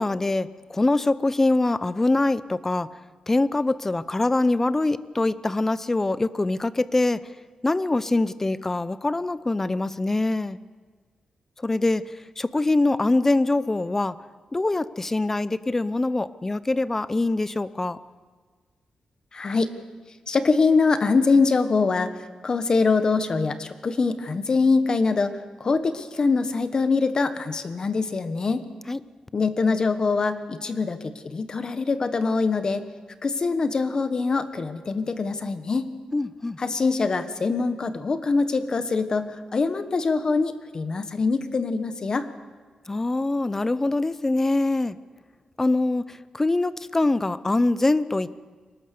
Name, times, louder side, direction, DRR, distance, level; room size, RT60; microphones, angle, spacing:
voice 1, 0.0-2.9 3.3-7.2 7.6-10.6 11.6-12.0 12.4-14.1 14.5-18.0 28.9-29.0 36.1-36.6 42.9-45.0 45.6-48.4, left 2 dB, 20° left, 16 dB, 0.6 m, -24 dB
voice 2, 19.3-19.7 20.3-22.1 22.4-25.3 25.6-28.6 29.3-32.8 33.2-35.9 36.6-42.3, left 4 dB, 40° left, 10 dB, 1.3 m, -23 dB
23.5 x 19.5 x 6.9 m, 1.5 s
wide cardioid pair, 140°, 2 cm